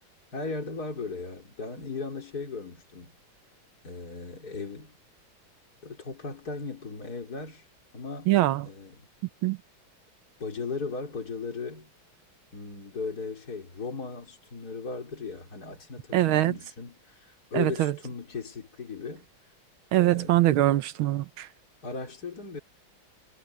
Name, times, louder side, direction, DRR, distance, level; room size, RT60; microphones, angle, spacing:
voice 1, 0.3-3.1 3.8-4.9 5.8-7.6 7.9-8.3 8.6-9.1 10.4-11.9 12.5-19.3 20.0-20.4 21.8-22.6, left 4 dB, 50° left, 4.5 m, -37 dB
voice 2, 8.3-8.7 9.4-9.6 16.1-16.5 17.5-17.9 19.9-21.5, right 15 dB, 90° right, 1.7 m, -23 dB
omnidirectional pair, 2.2 m